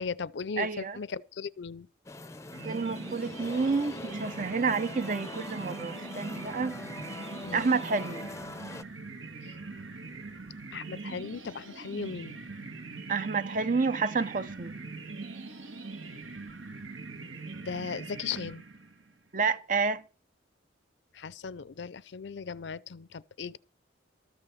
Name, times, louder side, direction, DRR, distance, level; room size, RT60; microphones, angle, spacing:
voice 1, 0.0-1.9 7.4-7.7 10.7-12.4 17.7-18.6 21.1-23.6, left 5 dB, 65° left, 0.5 m, -37 dB
voice 2, 0.6-1.0 2.6-6.7 7.5-8.3 13.1-14.7 19.3-20.0, right 4 dB, 45° right, 0.7 m, -29 dB
sound 1, 2.1-8.8, left 2 dB, 15° left, 0.6 m, -42 dB
sound 2, 2.5-19.1, right 3 dB, 80° right, 1.8 m, -42 dB
13.5 x 6.7 x 7.0 m
head